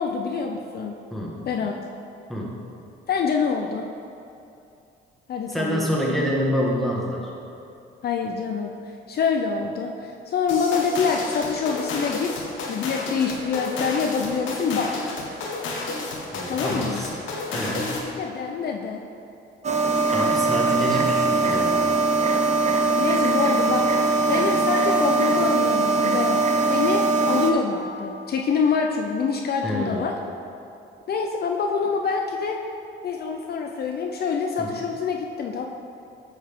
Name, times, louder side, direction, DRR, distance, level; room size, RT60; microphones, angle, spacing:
voice 1, 0.0-1.0 1.4-1.7 3.1-3.9 5.3-6.0 8.0-8.7 9.1-15.1 16.5-17.0 18.2-19.0 21.4-21.9 23.0-26.4 26.7-30.1 31.1-32.6 33.0-35.6, left 5 dB, 55° left, 2 dB, 0.6 m, -26 dB
voice 2, 5.5-7.3 16.3-17.2 17.5-18.0 20.1-21.9 29.6-30.0 34.6-34.7, equal, ahead, -4 dB, 1.6 m, -27 dB
sound 1, 10.5-18.1, left 3 dB, 80° left, 1.2 m, -31 dB
sound 2, 19.6-27.5, right 3 dB, 35° right, 0.8 m, -21 dB
9.2 x 5.4 x 3.6 m, 2.7 s
cardioid pair, 90°, 20 cm